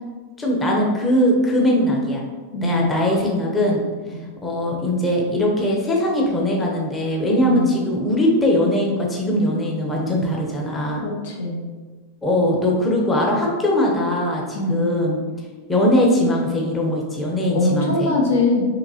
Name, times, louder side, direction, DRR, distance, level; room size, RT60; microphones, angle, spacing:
voice 1, 0.4-2.2 2.6-3.8 4.4-11.0 12.2-15.2 15.7-18.1, left 1 dB, 15° left, -2 dB, 0.6 m, -20 dB
voice 2, 2.5-2.8 4.1-4.2 7.4-7.7 11.0-11.7 14.5-14.9 17.5-18.7, left 2 dB, 85° left, 1 dB, 0.9 m, -22 dB
5.6 x 3.0 x 2.7 m, 1.4 s
supercardioid pair, 160°, 0 cm